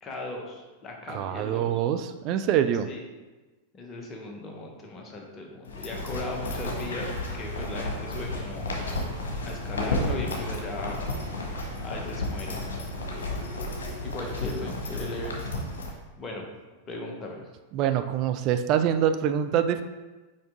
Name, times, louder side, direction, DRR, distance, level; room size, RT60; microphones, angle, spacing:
voice 1, 0.0-1.8 2.9-3.0 3.7-8.7 9.4-11.1 11.8-12.7 14.0-16.5 16.9-17.5, left 2 dB, 25° left, 0 dB, 1.2 m, -38 dB
voice 2, 1.1-2.9 17.7-19.8, right 9 dB, 40° right, 9 dB, 0.4 m, -25 dB
sound 1, 5.6-15.9, left 1 dB, 65° left, 1.3 m, -32 dB
5.8 x 5.1 x 3.7 m, 1.2 s
figure-of-eight pair, 90°, 0 cm